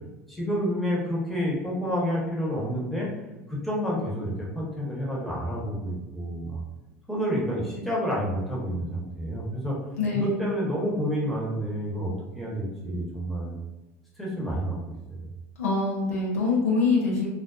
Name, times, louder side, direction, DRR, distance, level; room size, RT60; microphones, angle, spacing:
voice 1, 0.3-3.1 3.5-6.6 7.1-9.8 10.1-13.6 14.2-15.3, equal, ahead, -5 dB, 1.0 m, -29 dB
voice 2, 10.0-10.5 15.6-17.3, left 4 dB, 90° left, -3 dB, 0.7 m, -24 dB
2.4 x 2.2 x 2.4 m, 1.0 s
hypercardioid pair, 85°, 8 cm